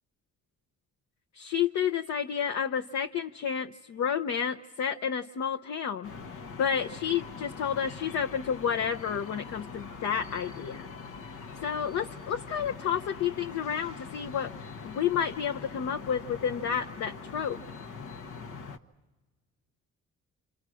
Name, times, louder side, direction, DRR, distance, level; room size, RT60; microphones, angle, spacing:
voice 1, 1.4-6.1 6.6-10.9 11.6-17.6, left 8 dB, 65° left, 5 dB, 0.8 m, -30 dB
sound 1, 6.0-18.8, left 4 dB, 85° left, 1.2 m, -43 dB
28.0 x 27.0 x 6.2 m, 1.2 s
cardioid pair, 90°, 30 cm